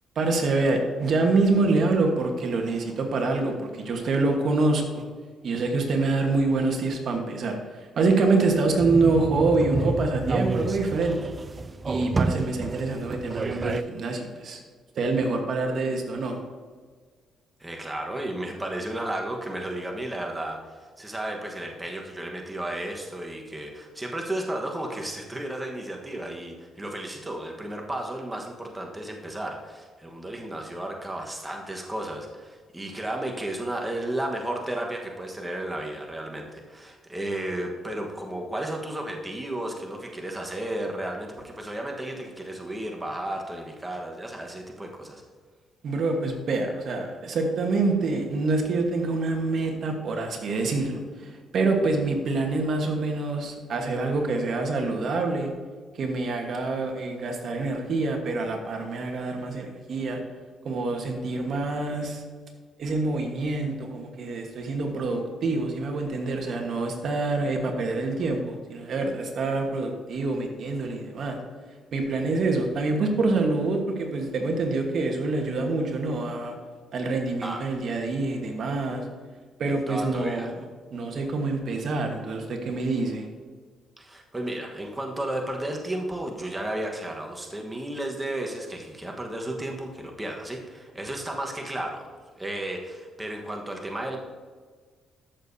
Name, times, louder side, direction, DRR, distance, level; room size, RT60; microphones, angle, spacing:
voice 1, 0.1-5.0 5.4-11.2 11.9-14.6 14.9-16.4 45.8-55.5 55.9-60.2 60.6-62.2 62.8-71.4 71.9-76.5 76.9-79.0 79.6-80.6 80.9-83.3, right 3 dB, 60° right, 3 dB, 1.3 m, -26 dB
sound 1, 8.8-13.8, right 3 dB, 30° right, 0.3 m, -29 dB
voice 2, 17.6-45.2 77.4-77.7 79.7-80.5 84.0-94.2, right 1 dB, 15° right, 1 dB, 1.3 m, -33 dB
13.5 x 6.6 x 2.8 m, 1.5 s
cardioid pair, 90°, 0 cm